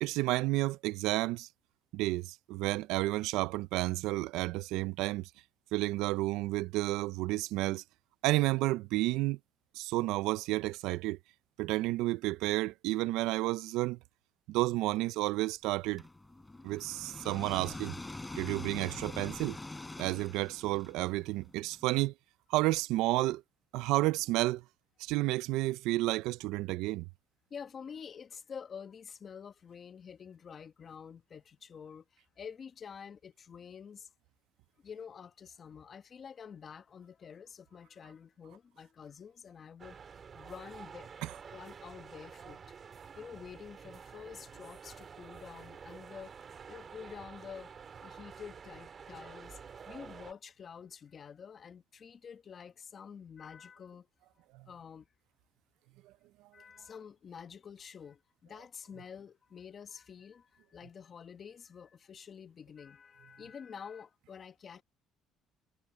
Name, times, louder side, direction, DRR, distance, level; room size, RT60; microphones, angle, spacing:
voice 1, 0.0-1.5 1.9-5.3 5.7-7.8 8.2-9.4 9.7-11.2 11.6-14.0 14.5-16.0 16.6-17.9 18.4-19.6 20.0-22.1 22.5-23.4 23.7-24.6 25.0-27.1 41.2-41.3 54.5-54.6, right 18 dB, 80° right, 0.5 m, -31 dB
sound 1, 16.0-21.9, left 2 dB, 15° left, 4.4 m, -44 dB
voice 2, 27.5-34.1 34.8-41.1 41.5-42.6 43.2-46.4 46.7-47.7 48.0-49.6 49.9-54.1 54.7-55.1 56.5-64.8, left 7 dB, 40° left, 1.5 m, -48 dB
sound 2, 39.8-50.3, right 6 dB, 40° right, 3.1 m, -49 dB
cardioid pair, 100°, 0 cm